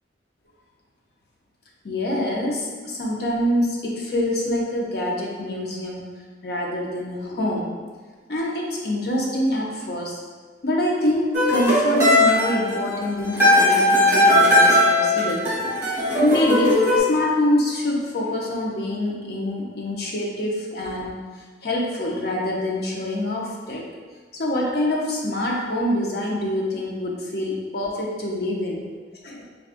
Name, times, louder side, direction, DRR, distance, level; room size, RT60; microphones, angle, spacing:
voice 1, 1.8-6.1 6.4-7.8 8.3-10.2 10.6-15.5 16.1-21.2 21.6-23.8 24.3-28.8 29.2-29.4, left 1 dB, 60° left, -2 dB, 0.6 m, -25 dB
sound 1, 11.3-17.0, left 1 dB, 15° right, 1.0 m, -18 dB
4.8 x 2.3 x 2.5 m, 1.5 s
head